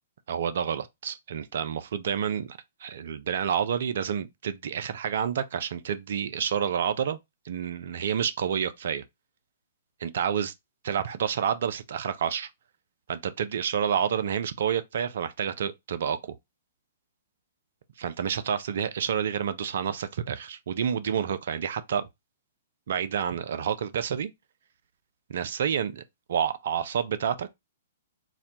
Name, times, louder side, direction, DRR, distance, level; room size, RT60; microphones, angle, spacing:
voice 1, 0.3-7.2 7.5-9.0 10.0-10.5 10.8-12.5 13.1-16.3 18.0-22.0 22.9-24.3 25.3-26.0 26.3-27.5, right 8 dB, 60° right, 0.4 m, -29 dB
4.0 x 2.2 x 2.8 m
figure-of-eight pair, 115°, 0 cm